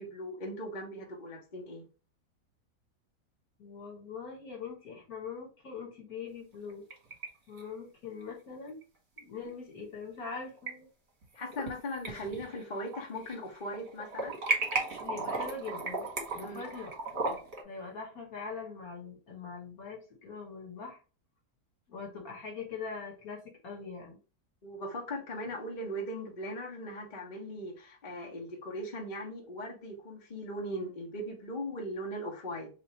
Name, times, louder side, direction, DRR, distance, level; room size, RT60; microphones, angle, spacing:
voice 1, 0.0-1.8 11.3-14.4 16.4-16.6 24.6-32.7, equal, 35° left, 0.9 m, -39 dB
voice 2, 3.6-6.8 7.5-8.8 9.2-10.9 15.0-16.1 16.3-16.9 17.3-17.4 17.6-21.0 21.9-24.2, left 5 dB, 60° left, 1.7 m, -42 dB
sound 1, 6.5-7.3 7.6-7.7 9.2-9.3 10.3-10.7 11.2-11.7 12.0-13.4 13.7-17.6, right 3 dB, 45° right, 1.4 m, -35 dB
3.0 x 2.5 x 4.3 m
omnidirectional pair, 1.8 m